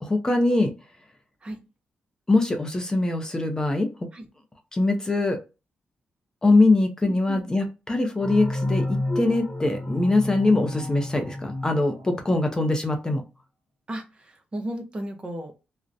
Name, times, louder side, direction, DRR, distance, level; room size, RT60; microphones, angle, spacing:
voice 1, 0.0-0.7 2.3-3.9 4.7-5.4 6.4-13.2, left 2 dB, 20° left, 5 dB, 0.5 m, -22 dB
voice 2, 7.0-7.4 13.9-15.6, right 1 dB, 30° right, 4 dB, 0.7 m, -35 dB
sound 1, 8.2-12.7, left 1 dB, ahead, 1.2 m, -31 dB
2.4 x 2.1 x 2.5 m, 0.29 s
cardioid pair, 85°, 3 cm